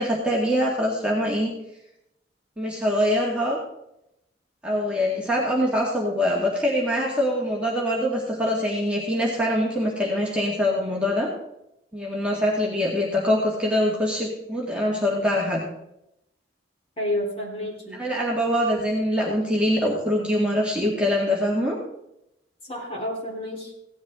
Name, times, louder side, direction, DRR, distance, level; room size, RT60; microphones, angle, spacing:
voice 1, 0.0-1.5 2.6-3.6 4.6-11.3 11.9-15.6 17.9-21.8, equal, 5° right, -4 dB, 1.9 m, -24 dB
voice 2, 17.0-18.0 22.7-23.7, left 1 dB, 30° left, -2 dB, 3.6 m, -30 dB
17.0 x 11.0 x 3.7 m, 0.83 s
head